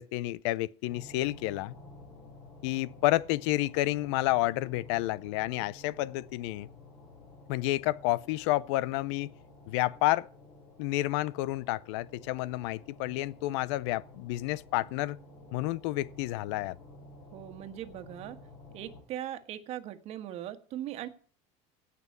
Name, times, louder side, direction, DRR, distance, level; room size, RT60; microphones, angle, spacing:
voice 1, 0.0-1.7 2.6-6.7 7.5-9.3 9.7-10.3 10.8-15.2 15.5-16.8, left 17 dB, 75° left, 0.6 m, -30 dB
sound 1, 0.9-19.0, left 2 dB, 45° left, 5.1 m, -52 dB
voice 2, 17.3-18.4 18.7-21.1, right 12 dB, 45° right, 1.5 m, -39 dB
17.0 x 6.0 x 8.0 m
cardioid pair, 150°, 14 cm